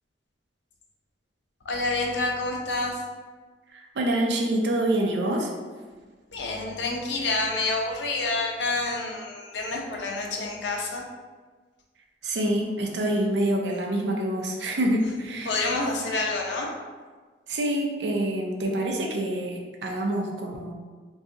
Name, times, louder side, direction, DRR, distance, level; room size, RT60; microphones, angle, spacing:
voice 1, 1.6-3.0 6.3-11.0 15.1-16.7, left 2 dB, 90° left, 0 dB, 0.6 m, -28 dB
voice 2, 3.7-5.5 12.2-15.5 17.5-20.7, right 1 dB, 80° right, 1 dB, 0.5 m, -26 dB
2.7 x 2.3 x 3.6 m, 1.4 s
head